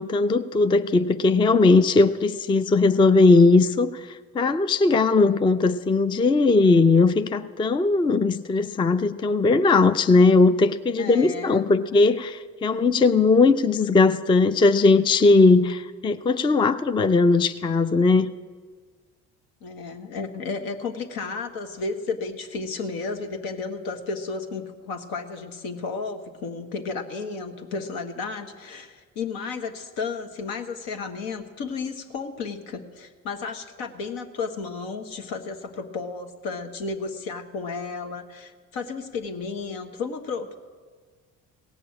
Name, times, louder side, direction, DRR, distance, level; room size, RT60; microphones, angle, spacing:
voice 1, 0.0-4.1 4.3-18.3, left 3 dB, 15° left, 12 dB, 0.4 m, -19 dB
voice 2, 11.0-11.6 19.6-40.6, left 4 dB, 75° left, 6 dB, 1.4 m, -33 dB
17.0 x 6.8 x 8.7 m, 1.5 s
supercardioid pair, 85°, 36 cm